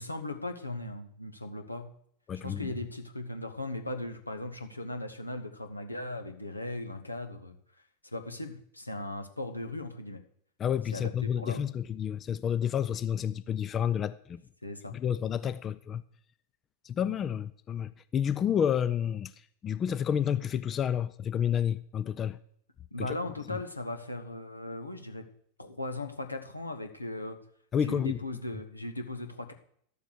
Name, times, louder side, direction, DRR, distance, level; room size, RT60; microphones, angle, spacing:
voice 1, 0.0-1.9 2.3-7.6 8.1-10.2 10.9-11.6 14.6-14.9 22.9-25.3 25.6-27.4 27.8-29.5, left 2 dB, 85° left, 1.2 m, -38 dB
voice 2, 2.3-2.7 10.6-14.4 14.9-16.0 16.8-19.3 19.6-22.4 23.0-23.1 23.5-23.6 27.7-28.2, left 8 dB, 25° left, 0.4 m, -30 dB
12.0 x 7.1 x 6.5 m
figure-of-eight pair, 90°, 0 cm